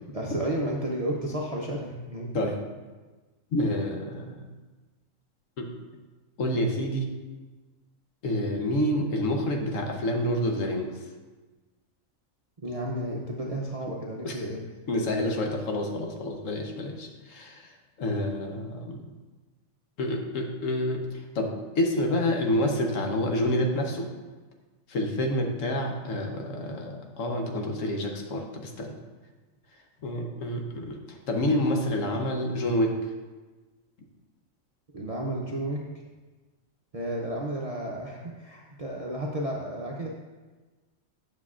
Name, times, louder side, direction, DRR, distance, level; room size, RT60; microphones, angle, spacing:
voice 1, 0.1-2.3 12.6-14.6 34.9-35.8 36.9-40.1, right 1 dB, 40° right, -3 dB, 0.5 m, -32 dB
voice 2, 3.5-4.4 5.6-5.7 6.4-7.1 8.2-10.9 14.2-14.4 14.9-17.7 18.0-19.1 20.0-24.1 24.9-29.0 30.0-33.0, left 1 dB, 70° left, 2 dB, 1.2 m, -28 dB
9.5 x 6.3 x 2.4 m, 1.3 s
omnidirectional pair, 1.4 m